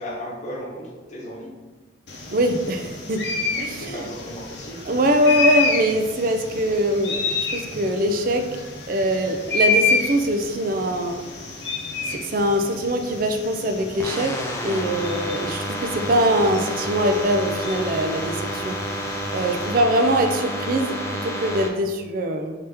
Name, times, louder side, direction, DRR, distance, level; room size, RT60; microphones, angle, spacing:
voice 1, 0.0-1.5 3.8-4.8, equal, 40° left, -3 dB, 0.9 m, -35 dB
sound 1, 2.1-19.7, left 3 dB, 60° left, 0.7 m, -29 dB
voice 2, 2.3-3.2 3.6-4.0 4.9-8.5 8.9-11.2 12.1-18.8 19.3-22.5, equal, 50° right, 5 dB, 0.4 m, -23 dB
sound 2, 14.0-21.7, equal, 15° left, 0.4 m, -29 dB
5.0 x 2.8 x 3.4 m, 1.2 s
head